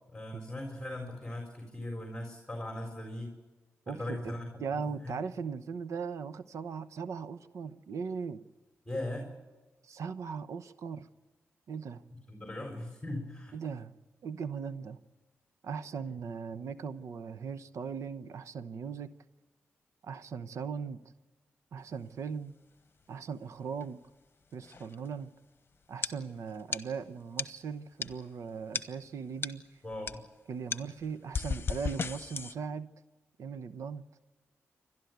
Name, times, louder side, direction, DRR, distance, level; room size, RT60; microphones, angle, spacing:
voice 1, 0.1-3.3 3.9-4.5 5.0-5.1 8.8-9.3 12.3-13.5 29.8-30.2, left 1 dB, 10° left, 2 dB, 4.3 m, -39 dB
voice 2, 3.9-4.3 4.6-8.4 9.8-11.1 11.7-12.0 13.5-13.9 14.2-15.0 15.6-19.1 20.0-21.0 21.7-22.5 23.1-24.0 24.5-25.3 25.9-29.6 30.5-32.9 33.4-34.0, right 6 dB, 80° right, 12 dB, 0.9 m, -39 dB
sound 1, 23.7-24.1 24.6-25.2 26.0-26.1 26.5-26.8 27.4-27.5 28.0-28.3 28.7-28.8 29.4-29.6 29.9-30.2 30.7-32.5, left 5 dB, 45° left, 1.1 m, -35 dB
29.0 x 12.5 x 9.4 m, 1.2 s
cardioid pair, 80°, 5 cm